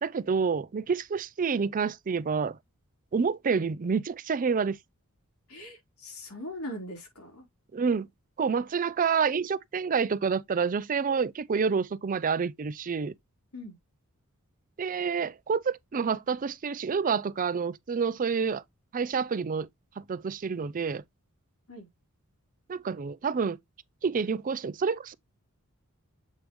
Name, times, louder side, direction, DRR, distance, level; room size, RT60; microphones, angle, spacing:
voice 1, 0.0-2.6 3.1-4.8 7.7-8.1 8.4-13.1 14.8-18.6 18.9-19.7 20.0-21.0 22.7-23.6 24.0-25.1, right 5 dB, 40° right, 0.4 m, -28 dB
voice 2, 5.5-7.5 13.5-13.8 21.7-21.9, left 1 dB, 85° left, 3.9 m, -40 dB
7.4 x 5.2 x 3.0 m
head